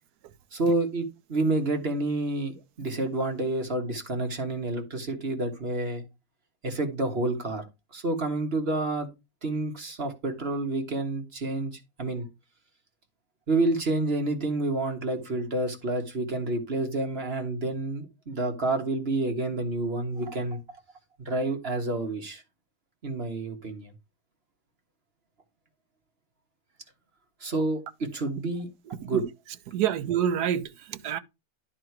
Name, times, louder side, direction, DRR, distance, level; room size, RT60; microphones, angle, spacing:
voice 1, 0.5-6.0 6.6-7.6 7.9-9.1 9.4-12.3 13.5-20.6 21.2-22.4 23.0-23.9 27.4-28.7 29.0-29.2, right 2 dB, 40° right, 1.6 m, -29 dB
voice 2, 28.9-29.3 29.7-31.2, right 9 dB, 85° right, 1.3 m, -28 dB
11.0 x 3.8 x 4.6 m
omnidirectional pair, 1.7 m